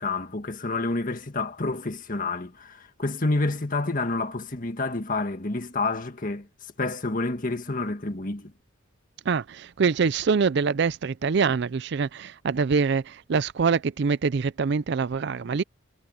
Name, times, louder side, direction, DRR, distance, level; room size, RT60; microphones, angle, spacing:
voice 1, 0.0-6.5 6.8-8.5, left 2 dB, 40° left, 1.8 m, -29 dB
voice 2, 9.3-15.6, right 5 dB, 55° right, 0.4 m, -24 dB
head